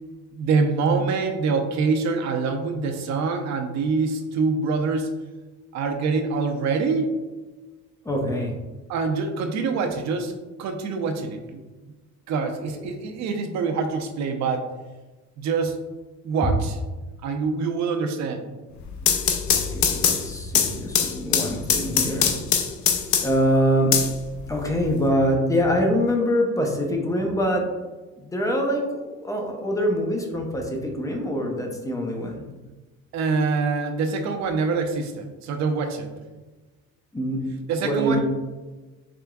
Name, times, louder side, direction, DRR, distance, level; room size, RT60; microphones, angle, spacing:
voice 1, 0.3-5.1 5.7-7.1 8.9-10.3 10.6-11.6 12.3-14.7 15.4-15.8 16.2-16.8 17.2-18.4 33.1-36.1 37.7-38.2, right 4 dB, 65° right, 5 dB, 0.7 m, -25 dB
voice 2, 8.0-8.5 19.0-19.1 19.5-22.3 23.2-23.9 24.5-27.7 28.2-32.4 37.1-37.4 37.8-38.2, equal, 10° left, 1 dB, 0.6 m, -24 dB
sound 1, 18.8-23.5 23.9-24.9, left 8 dB, 70° left, 0.6 m, -22 dB
5.0 x 3.4 x 2.3 m, 1.2 s
cardioid pair, 130°, 30 cm